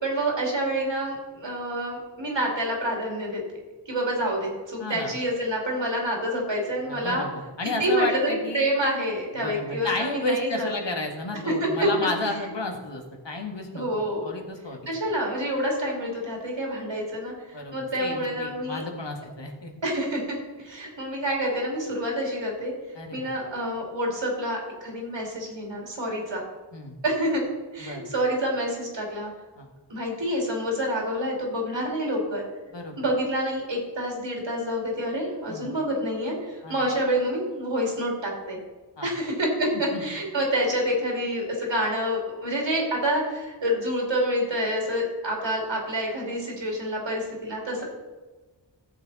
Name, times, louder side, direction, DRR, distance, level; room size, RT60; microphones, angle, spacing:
voice 1, 0.0-3.4 3.9-7.2 7.8-10.7 11.6-12.1 13.7-14.3 14.9-18.9 19.8-22.7 23.1-26.4 27.0-27.4 27.7-29.3 29.9-32.5 33.0-38.6 39.0-47.8, equal, 80° right, -2 dB, 2.8 m, -27 dB
voice 2, 4.8-5.1 6.9-7.3 7.6-8.7 9.4-14.8 17.5-19.7 23.0-23.3 26.7-27.0 27.8-28.1 29.6-29.7 32.7-32.9 35.5-35.7 36.6-36.8 39.0-39.1 39.9-40.0, left 2 dB, 75° left, 2 dB, 1.8 m, -32 dB
14.0 x 7.4 x 4.1 m, 1.3 s
wide cardioid pair, 55°, 44 cm